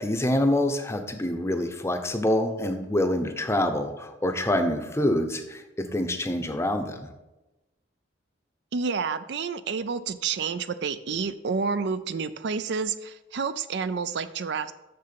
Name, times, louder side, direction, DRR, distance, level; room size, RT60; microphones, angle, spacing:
voice 1, 0.0-7.1, left 1 dB, 15° left, 7 dB, 0.7 m, -26 dB
voice 2, 8.7-14.7, right 5 dB, 60° right, 12 dB, 0.4 m, -29 dB
6.8 x 6.7 x 6.8 m, 1.0 s
head